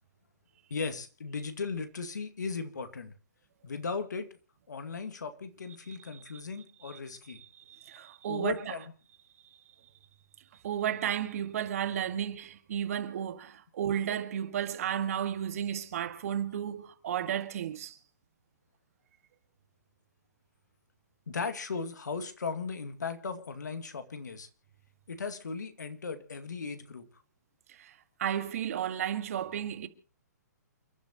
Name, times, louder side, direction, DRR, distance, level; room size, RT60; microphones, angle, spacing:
voice 1, 0.7-3.1 3.6-4.3 4.7-7.4 8.3-8.8 21.3-24.5 25.1-27.1, left 5 dB, 75° left, 2.2 m, -37 dB
voice 2, 7.4-8.8 10.6-18.0 27.7-29.9, right 9 dB, 55° right, 1.9 m, -33 dB
29.0 x 11.5 x 3.0 m
hypercardioid pair, 130°, 10 cm